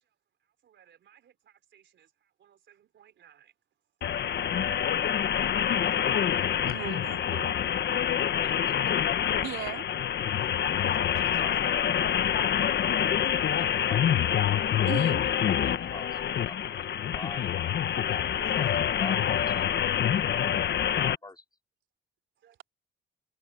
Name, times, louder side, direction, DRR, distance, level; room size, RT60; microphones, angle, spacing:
voice 1, 0.7-1.3 1.7-1.8 2.4-3.5 4.9-5.1 8.0-8.1 10.2-11.1 18.6-18.7 22.4-22.5, right 10 dB, 65° right, 4.2 m, -59 dB
sound 1, 4.0-21.1, left 9 dB, 60° left, 1.3 m, -26 dB
voice 2, 6.6-7.6 9.4-9.8 14.9-15.2, right 13 dB, 85° right, 3.1 m, -37 dB
voice 3, 8.4-8.8 11.1-12.3 13.6-14.2 15.1-17.5 18.1-19.8 20.1-21.4, left 3 dB, 20° left, 3.4 m, -46 dB
cardioid pair, 90°, 20 cm